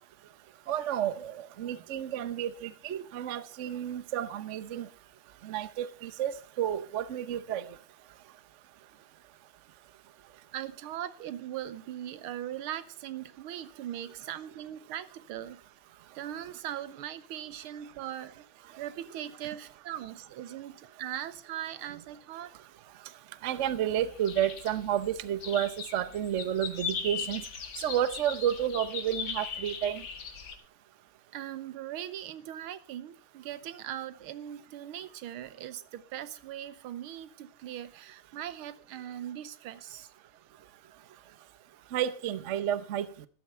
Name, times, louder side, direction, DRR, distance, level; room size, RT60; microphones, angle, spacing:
voice 1, 0.7-4.9 5.4-7.7 23.4-27.4 27.8-30.0 41.9-43.3, right 10 dB, 60° right, 0.7 m, -31 dB
voice 2, 10.5-15.6 16.2-18.5 18.8-22.5 31.3-40.1, right 11 dB, 85° right, 1.7 m, -40 dB
sound 1, 23.6-30.5, left 6 dB, 65° left, 2.2 m, -39 dB
13.5 x 12.0 x 4.4 m
omnidirectional pair, 2.3 m